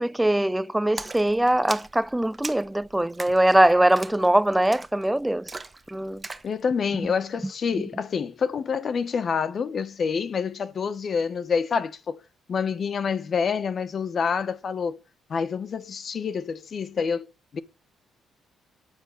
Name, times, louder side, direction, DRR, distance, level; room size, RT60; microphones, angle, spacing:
voice 1, 0.0-5.5 5.9-6.2 7.7-7.8, right 1 dB, 10° right, 0.6 m, -22 dB
Splash splatter, 1.0-6.5, right 3 dB, 25° right, 1.3 m, -40 dB
voice 2, 6.4-12.2 12.5-15.0 15.3-17.3 17.5-17.6, left 6 dB, 50° left, 1.6 m, -27 dB
9.7 x 8.9 x 7.0 m
cardioid pair, 90°, 0 cm